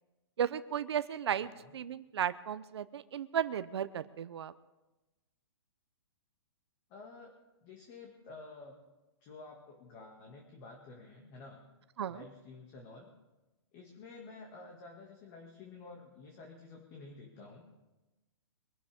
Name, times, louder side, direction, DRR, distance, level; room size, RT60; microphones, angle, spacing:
voice 1, 0.4-4.5 12.0-12.2, right 9 dB, 70° right, 13 dB, 0.7 m, -35 dB
voice 2, 1.4-1.7 6.9-7.3 7.6-8.8 9.2-11.6 12.1-13.1 13.7-17.6, left 3 dB, 30° left, 0 dB, 2.2 m, -51 dB
24.0 x 12.0 x 3.7 m, 1.1 s
hypercardioid pair, 155°, 14 cm